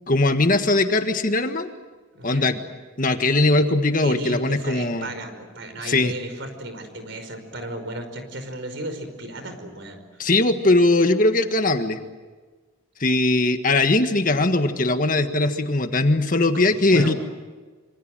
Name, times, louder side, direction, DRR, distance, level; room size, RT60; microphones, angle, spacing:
voice 1, 0.1-1.7 2.2-2.6 3.0-5.1 5.8-6.1 10.2-12.0 13.0-17.1, left 2 dB, 40° left, 7 dB, 1.6 m, -20 dB
voice 2, 2.1-2.5 4.0-10.2 16.5-17.2, right 1 dB, 60° right, 8 dB, 5.3 m, -34 dB
27.0 x 26.0 x 7.8 m, 1.3 s
head